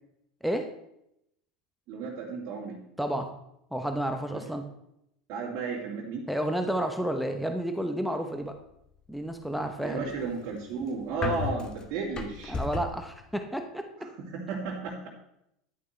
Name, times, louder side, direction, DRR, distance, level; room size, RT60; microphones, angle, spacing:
voice 1, 0.4-0.7 3.0-3.3 3.7-4.7 6.3-8.5 9.1-10.1 12.5-13.9, right 1 dB, ahead, 5 dB, 0.9 m, -31 dB
voice 2, 1.9-2.8 4.3-4.4 5.3-6.3 9.8-12.6 14.0-15.1, right 4 dB, 45° right, -6 dB, 2.6 m, -34 dB
sound 1, 10.0-13.1, left 4 dB, 25° left, 1.3 m, -35 dB
11.0 x 9.3 x 3.3 m, 0.79 s
figure-of-eight pair, 80°, 3 cm